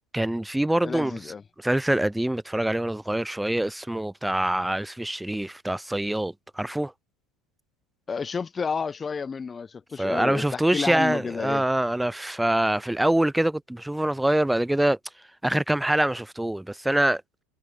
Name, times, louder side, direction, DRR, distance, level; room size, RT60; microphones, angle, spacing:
voice 1, 0.1-1.3 1.6-6.9 10.0-15.0 15.4-17.2, right 1 dB, 5° right, 4.5 m, -25 dB
voice 2, 0.8-1.4 8.1-11.6, left 5 dB, 25° left, 4.6 m, -31 dB
figure-of-eight pair, 75°, 0 cm